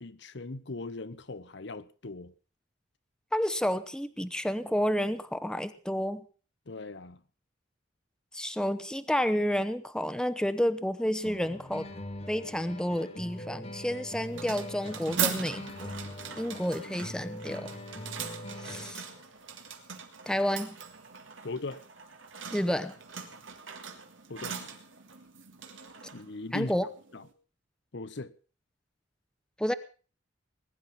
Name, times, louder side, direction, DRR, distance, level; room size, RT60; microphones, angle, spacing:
voice 1, 0.0-2.3 6.7-7.2 21.4-21.8 24.3-24.6 26.1-26.7 27.1-27.2 27.9-28.3, left 3 dB, 65° left, 0.9 m, -39 dB
voice 2, 3.3-6.3 8.3-11.9 12.3-15.9 16.4-17.7 18.6-19.0 20.3-20.8 22.5-23.0 26.5-26.9 29.6-29.7, equal, 5° left, 0.9 m, -30 dB
sound 1, 11.2-19.2, left 1 dB, 35° left, 1.7 m, -42 dB
sound 2, 14.2-27.3, right 7 dB, 90° right, 2.8 m, -40 dB
20.5 x 11.0 x 5.8 m
head